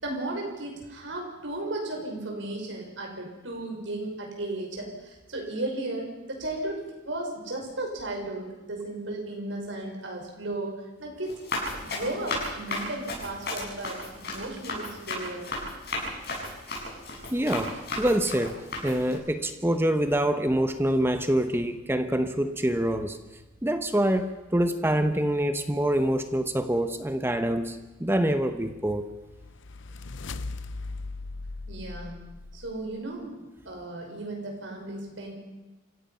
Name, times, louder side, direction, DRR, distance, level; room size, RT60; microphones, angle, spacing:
voice 1, 0.0-15.5 31.7-32.2 32.5-33.3 33.6-35.3, right 2 dB, 75° right, 1 dB, 5.8 m, -35 dB
Run, 11.2-19.2, left 2 dB, 55° left, 7.4 m, -35 dB
voice 2, 17.3-23.2 23.6-29.1, right 1 dB, 10° right, 8 dB, 1.0 m, -26 dB
sound 1, 28.8-33.0, left 3 dB, 70° left, 0.7 m, -39 dB
28.0 x 16.5 x 5.7 m, 1.1 s
head